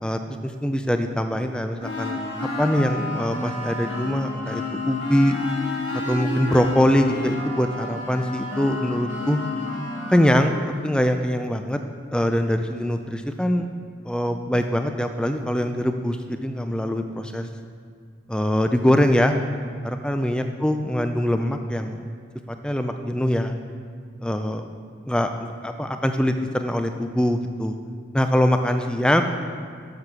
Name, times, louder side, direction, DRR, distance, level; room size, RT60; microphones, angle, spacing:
voice 1, 0.0-2.2 2.6-5.4 5.9-9.4 10.1-10.6 10.8-11.8 12.1-13.7 14.1-17.5 18.3-19.4 19.8-22.0 22.5-23.5 24.2-24.6 25.1-27.8 28.1-29.2, equal, 5° left, 6 dB, 0.3 m, -23 dB
sound 1, 1.8-10.7, left 2 dB, 70° left, 1.4 m, -30 dB
6.8 x 6.2 x 5.6 m, 2.1 s
head